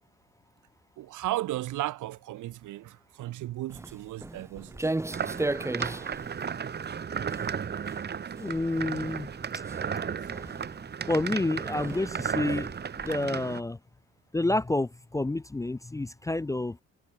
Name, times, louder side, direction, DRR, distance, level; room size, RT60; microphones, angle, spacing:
voice 1, 1.0-4.8 10.0-10.3, right 15 dB, 85° right, 1.8 m, -35 dB
Walk footsteps, 3.7-13.2, right 2 dB, 10° right, 1.0 m, -37 dB
sound 1, 5.1-13.6, right 7 dB, 35° right, 0.9 m, -34 dB
voice 2, 8.4-9.6 11.1-13.8 14.3-16.8, left 2 dB, 10° left, 0.5 m, -29 dB
cardioid pair, 90°, 30 cm